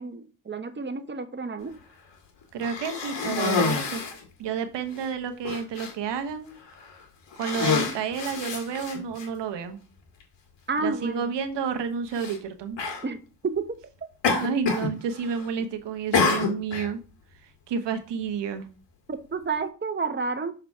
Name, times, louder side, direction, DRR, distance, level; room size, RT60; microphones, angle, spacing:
voice 1, 0.0-1.8 10.7-11.3 13.0-13.8 19.1-20.5, right 4 dB, 25° right, 8 dB, 1.0 m, -30 dB
voice 2, 2.5-4.0 4.4-6.6 7.4-9.8 10.8-12.8 14.4-17.0 17.4-18.7, right 6 dB, 85° right, 8 dB, 1.0 m, -30 dB
Cough, 2.6-4.2 5.0-5.1 5.4-5.9 6.7-6.9 7.3-9.3 10.2-10.3 12.1-12.4 12.8-13.0 14.2-14.9 15.2-15.6 16.1-16.9, left 5 dB, 80° left, 1.9 m, -27 dB
6.5 x 3.9 x 4.5 m, 0.35 s
cardioid pair, 60°, 42 cm